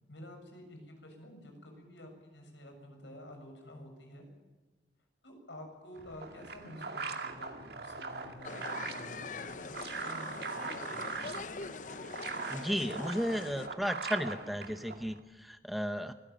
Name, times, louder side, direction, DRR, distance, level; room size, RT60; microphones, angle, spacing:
voice 1, 0.1-4.3 5.2-11.1, left 1 dB, 85° left, 4 dB, 7.1 m, -50 dB
sound 1, 5.9-15.2, right 4 dB, 60° right, 2.2 m, -41 dB
sound 2, 8.4-13.7, left 4 dB, 45° left, 0.8 m, -43 dB
voice 2, 12.5-16.1, equal, ahead, 9 dB, 0.8 m, -34 dB
24.5 x 17.5 x 8.8 m, 1.3 s
head